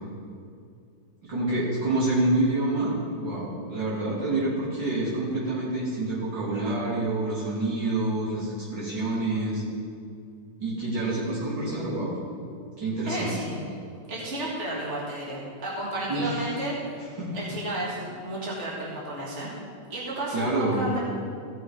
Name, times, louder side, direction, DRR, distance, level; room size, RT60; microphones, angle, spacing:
voice 1, 1.3-9.6 10.6-12.1 12.8-13.3 16.1-16.4 17.2-17.3 20.3-20.8, right 2 dB, 80° right, -8 dB, 3.9 m, -27 dB
voice 2, 13.1-13.6 14.1-16.8 17.3-19.5 19.9-21.0, right 1 dB, 40° right, -6 dB, 2.4 m, -32 dB
15.0 x 6.4 x 4.9 m, 2.4 s
omnidirectional pair, 1.9 m